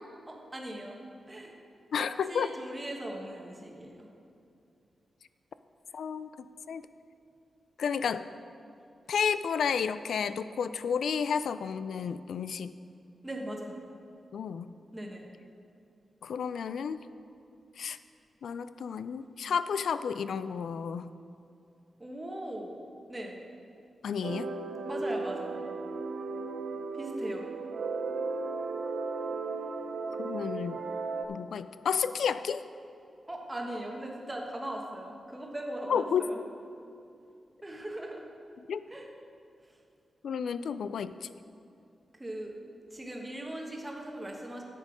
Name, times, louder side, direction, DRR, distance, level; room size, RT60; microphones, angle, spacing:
voice 1, 0.3-1.0 1.3-1.6 2.0-4.1 13.2-13.8 14.9-15.2 22.0-22.8 23.1-23.4 24.8-25.6 26.9-27.4 33.3-36.4 37.6-38.2 38.9-39.1 39.6-39.8 42.1-42.5 42.9-44.6, right 1 dB, 15° right, 0 dB, 1.2 m, -39 dB
voice 2, 1.9-2.5 5.9-6.8 7.8-8.2 9.1-12.8 14.3-14.7 16.2-17.0 17.8-18.0 18.4-21.1 24.0-24.5 30.2-30.8 31.3-32.6 35.9-36.2 38.7-38.9 40.2-41.3, left 7 dB, 85° left, 13 dB, 0.3 m, -31 dB
sound 1, 24.2-31.3, right 3 dB, 75° right, 0.6 m, -35 dB
9.9 x 7.6 x 4.9 m, 2.5 s
wide cardioid pair, 165°, 0 cm